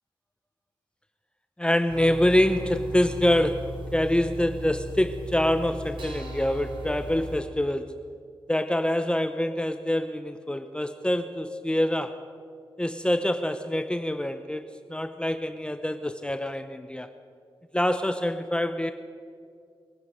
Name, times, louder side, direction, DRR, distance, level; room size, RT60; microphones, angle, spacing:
voice 1, 1.6-7.9 8.5-12.2 12.8-14.6 14.9-17.1 17.7-18.9, left 1 dB, 10° left, 9 dB, 0.7 m, -25 dB
sound 1, 1.9-7.4, equal, 65° right, 3.2 m, -37 dB
22.5 x 9.4 x 6.3 m, 2.3 s
cardioid pair, 60°, 9 cm